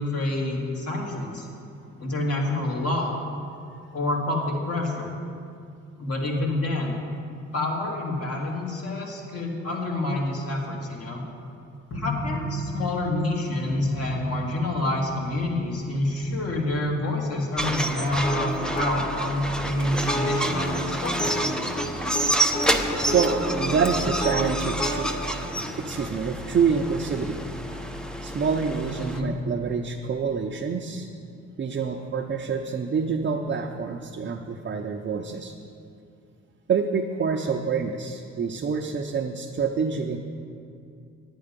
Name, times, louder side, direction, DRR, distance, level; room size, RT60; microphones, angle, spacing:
voice 1, 0.0-1.5 2.0-3.1 3.9-5.1 6.0-7.0 7.5-11.2 11.9-21.5 29.0-29.3, left 1 dB, 50° left, -1 dB, 2.2 m, -28 dB
sound 1, 11.9-13.0 13.7-14.6 15.0-15.6 16.2-16.9, left 1 dB, 70° left, 2.8 m, -33 dB
sound 2, 17.6-29.2, right 1 dB, 5° left, 0.6 m, -29 dB
sound 3, 18.2-19.0 19.9-21.9 22.1-22.3 22.5-25.0, equal, 25° left, 1.5 m, -30 dB
voice 2, 23.1-25.1 25.8-27.4 28.2-31.1 31.6-35.5 36.7-40.2, right 5 dB, 35° right, 1 dB, 0.7 m, -27 dB
9.7 x 9.3 x 5.2 m, 2.4 s
cardioid pair, 90°, 30 cm